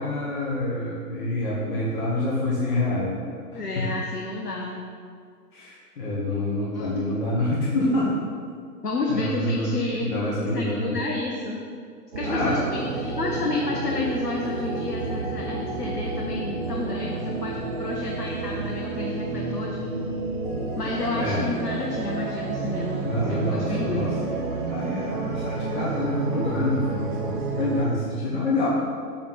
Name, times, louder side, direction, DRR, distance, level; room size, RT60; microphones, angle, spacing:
voice 1, 0.0-3.3 3.7-3.9 5.5-8.2 9.1-11.0 12.2-12.6 21.1-21.5 23.0-24.1 24.7-28.7, left 1 dB, 30° left, -7 dB, 1.5 m, -27 dB
voice 2, 3.5-4.8 6.7-7.1 8.8-11.6 12.1-19.8 20.8-24.2, left 3 dB, 70° left, -1 dB, 1.2 m, -30 dB
sound 1, 12.1-27.9, right 3 dB, 35° right, 0.6 m, -30 dB
7.4 x 7.1 x 4.2 m, 2.1 s
figure-of-eight pair, 130°, 49 cm